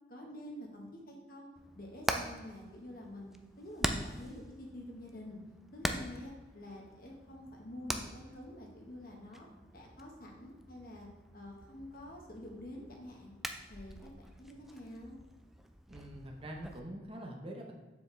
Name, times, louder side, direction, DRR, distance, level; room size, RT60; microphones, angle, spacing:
voice 1, 0.1-1.5 1.7-5.4 5.7-9.5 9.7-11.1 11.3-13.3 13.7-15.2, left 1 dB, 50° left, 0 dB, 1.5 m, -48 dB
Hammer, 1.6-16.8, equal, ahead, 0.4 m, -43 dB
voice 2, 15.9-17.7, right 1 dB, 30° right, 1 dB, 0.9 m, -44 dB
7.1 x 7.1 x 3.4 m, 1.2 s
head